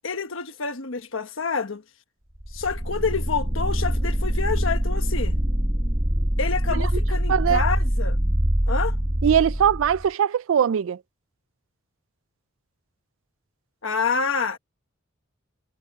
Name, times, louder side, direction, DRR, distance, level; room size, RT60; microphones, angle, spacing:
voice 1, 0.0-1.8 2.5-5.4 6.4-8.2 8.7-9.0 13.8-14.6, left 5 dB, 65° left, 1.3 m, -28 dB
sound 1, 2.4-10.1, equal, 25° right, 1.8 m, -24 dB
voice 2, 7.3-7.6 9.2-11.0, right 8 dB, 65° right, 0.3 m, -21 dB
head